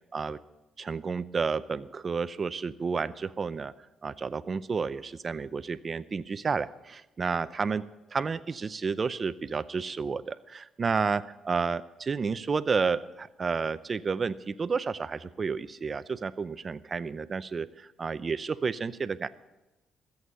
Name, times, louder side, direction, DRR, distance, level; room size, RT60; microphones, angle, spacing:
voice 1, 0.8-3.7 4.0-7.8 8.1-19.3, right 5 dB, 40° right, 15 dB, 0.5 m, -31 dB
14.0 x 8.1 x 6.7 m, 1.0 s
cardioid pair, 90°, 0 cm